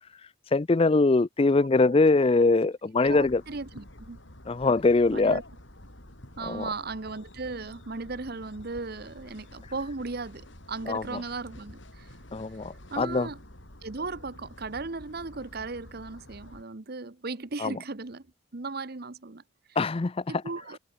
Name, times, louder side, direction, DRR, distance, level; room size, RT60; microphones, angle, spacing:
voice 1, 0.5-3.4 4.5-5.4 6.5-6.7 10.9-11.0 12.3-13.3 17.6-17.7 19.8-20.2, left 3 dB, 25° left, 0.4 m, -22 dB
sound 1, 3.0-16.6, left 1 dB, 60° left, 6.8 m, -49 dB
voice 2, 3.0-4.2 5.1-5.4 6.4-12.1 12.9-13.4 13.8-18.3 18.5-19.4 20.3-20.8, right 3 dB, 50° right, 1.0 m, -37 dB
head